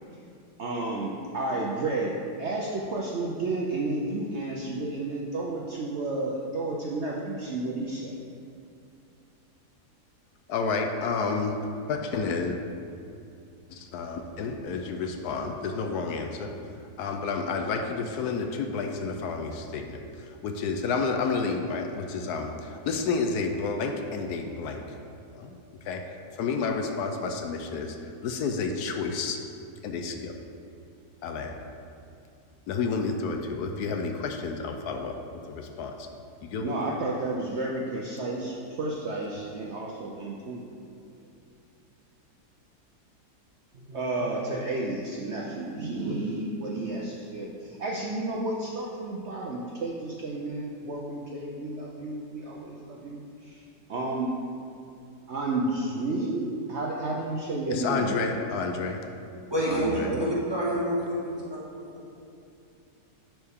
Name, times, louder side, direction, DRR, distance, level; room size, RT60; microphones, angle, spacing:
voice 1, 0.6-2.1 2.4-8.1 36.6-40.7 43.7-53.6 53.9-54.3 55.3-58.3 59.7-60.2, right 2 dB, 60° right, -3 dB, 0.8 m, -31 dB
voice 2, 10.5-11.6 11.9-12.6 13.7-16.5 17.0-24.8 25.3-25.5 25.8-26.0 26.4-28.0 28.2-29.4 29.8-30.4 31.2-31.6 32.7-35.2 35.5-36.1 36.4-36.8 57.7-59.0 59.7-60.1, left 4 dB, 75° left, 4 dB, 1.1 m, -30 dB
voice 3, 59.5-61.4, equal, 15° right, -7 dB, 1.5 m, -27 dB
11.0 x 4.5 x 3.5 m, 2.5 s
omnidirectional pair, 1.7 m